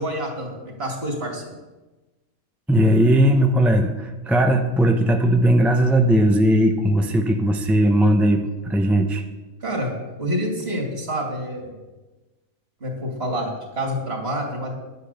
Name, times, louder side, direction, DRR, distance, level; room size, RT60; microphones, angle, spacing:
voice 1, 0.0-1.5 9.6-11.8 12.8-14.7, equal, 45° right, -1 dB, 2.7 m, -28 dB
voice 2, 2.7-9.2, right 1 dB, ahead, 4 dB, 0.4 m, -18 dB
10.5 x 8.2 x 6.7 m, 1.2 s
omnidirectional pair, 1.5 m